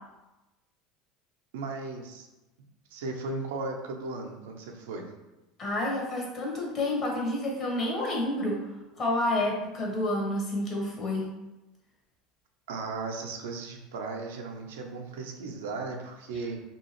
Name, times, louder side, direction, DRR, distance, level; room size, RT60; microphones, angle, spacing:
voice 1, 1.5-2.3 2.9-5.1 12.7-16.6, right 3 dB, 75° right, 3 dB, 0.4 m, -36 dB
voice 2, 5.6-8.6 9.0-11.3, left 1 dB, 45° left, -2 dB, 1.0 m, -29 dB
2.7 x 2.4 x 2.9 m, 1.0 s
hypercardioid pair, 75°, 0 cm